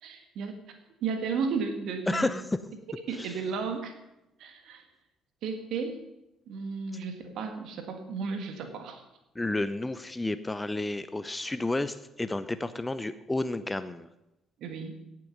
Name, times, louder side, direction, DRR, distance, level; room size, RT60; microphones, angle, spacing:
voice 1, 0.0-2.3 3.1-4.0 4.4-4.8 5.4-6.0 6.5-9.0 14.6-15.1, right 5 dB, 60° right, 7 dB, 1.8 m, -34 dB
voice 2, 2.1-2.4 3.2-3.3 9.4-14.1, left 2 dB, 15° left, 13 dB, 0.7 m, -31 dB
17.0 x 7.7 x 5.4 m, 0.93 s
figure-of-eight pair, 45°, 0 cm